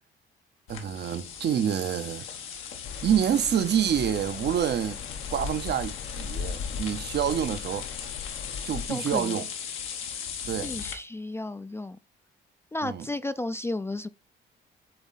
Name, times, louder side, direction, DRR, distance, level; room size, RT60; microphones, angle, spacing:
sound 1, 0.7-10.9, left 8 dB, 90° left, 1.3 m, -38 dB
voice 1, 0.7-2.3 3.0-5.0 5.3-7.9 8.6-9.5 10.5-10.7 12.8-13.1, right 9 dB, 60° right, 0.7 m, -27 dB
sound 2, 2.8-8.9, left 6 dB, 75° left, 1.0 m, -38 dB
voice 2, 8.9-9.4 10.6-12.0 12.7-14.1, left 2 dB, 10° left, 0.3 m, -33 dB
7.7 x 3.6 x 4.0 m
cardioid pair, 90°, 20 cm